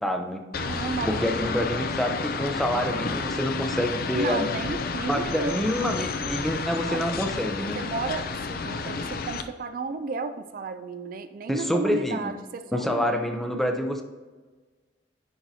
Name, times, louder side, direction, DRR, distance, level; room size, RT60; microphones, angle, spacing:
voice 1, 0.0-0.4 1.1-4.5 5.1-7.8 11.5-12.3 12.7-14.0, equal, ahead, 4 dB, 0.5 m, -27 dB
sound 1, 0.5-9.4, left 4 dB, 55° left, 0.5 m, -31 dB
voice 2, 0.6-2.0 4.2-5.6 6.9-7.1 7.8-13.3, right 4 dB, 50° right, 9 dB, 0.3 m, -33 dB
9.9 x 4.6 x 2.7 m, 1.3 s
head